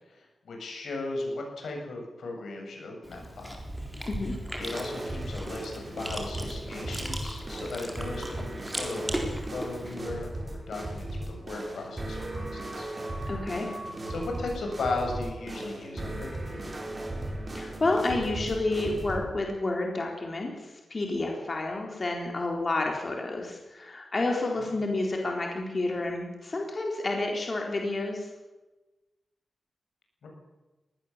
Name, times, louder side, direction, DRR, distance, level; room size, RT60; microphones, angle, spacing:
voice 1, 0.1-3.6 4.6-12.9 13.2-13.3 14.1-16.7 24.6-24.7 30.2-30.3, left 2 dB, 90° left, 1 dB, 7.7 m, -37 dB
Chewing mastication, 3.0-9.9, right 1 dB, 5° right, 4.0 m, -38 dB
sound 1, 4.6-19.2, right 1 dB, 25° right, 4.7 m, -37 dB
voice 2, 13.3-13.8 17.5-20.5 20.9-28.3, left 2 dB, 35° left, 1 dB, 3.9 m, -30 dB
22.5 x 19.0 x 7.4 m, 1.1 s
wide cardioid pair, 160°, 0 cm